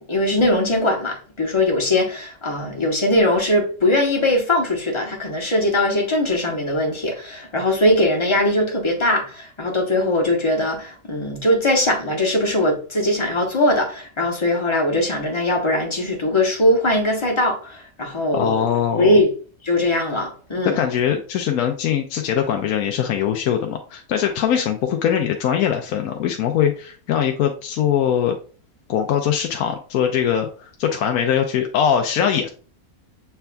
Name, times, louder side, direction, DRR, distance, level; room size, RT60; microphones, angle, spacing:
voice 1, 0.1-18.6 19.0-19.3 19.6-20.8, left 1 dB, 20° left, 1.0 m, -20 dB
voice 2, 18.3-19.2 20.6-28.4 28.9-32.5, left 9 dB, 80° left, 1.0 m, -21 dB
7.0 x 3.4 x 2.2 m
omnidirectional pair, 1.5 m